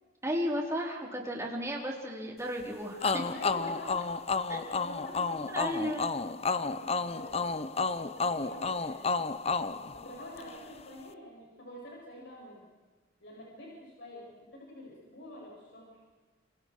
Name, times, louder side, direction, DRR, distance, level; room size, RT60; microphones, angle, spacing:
voice 1, 0.2-3.3 4.5-4.6 5.5-6.1, equal, 15° right, -1 dB, 4.5 m, -34 dB
sound 1, 3.0-10.6, left 4 dB, 35° left, 0.8 m, -31 dB
voice 2, 3.2-4.0 4.5-6.1 6.5-7.6 7.9-9.1 9.9-12.7 13.2-15.9, left 1 dB, 65° left, -3 dB, 7.9 m, -47 dB
29.0 x 27.5 x 4.9 m, 1.4 s
head